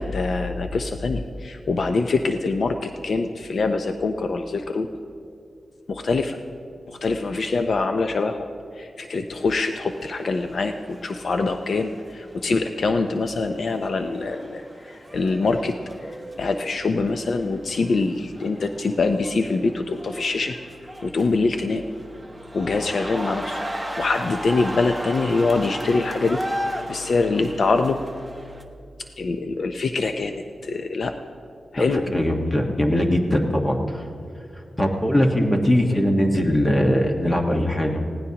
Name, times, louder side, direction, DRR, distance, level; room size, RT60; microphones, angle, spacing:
voice 1, 0.0-4.9 5.9-6.4 6.9-8.5 8.7-15.8 16.4-20.6 21.0-21.8 22.5-23.6 24.0-26.4 26.9-28.0 29.2-31.2 31.7-32.1, left 3 dB, 60° left, 6 dB, 0.6 m, -24 dB
sound 1, 9.3-28.6, equal, ahead, 1.0 m, -36 dB
voice 2, 32.1-34.0 34.8-38.1, equal, 20° left, 2 dB, 1.4 m, -21 dB
19.5 x 16.5 x 2.9 m, 2.4 s
wide cardioid pair, 115°, 0 cm